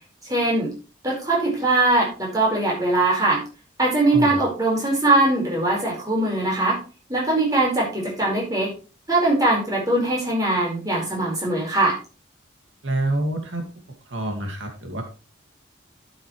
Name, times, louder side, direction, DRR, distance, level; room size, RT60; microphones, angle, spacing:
voice 1, 0.3-0.7 1.0-3.4 3.8-6.8 7.1-8.7 9.1-12.0, right 2 dB, 20° right, -2 dB, 4.7 m, -21 dB
voice 2, 4.0-4.3 12.8-13.6 14.1-15.0, right 2 dB, 80° right, 3 dB, 2.1 m, -27 dB
12.0 x 8.0 x 3.2 m, 0.33 s
head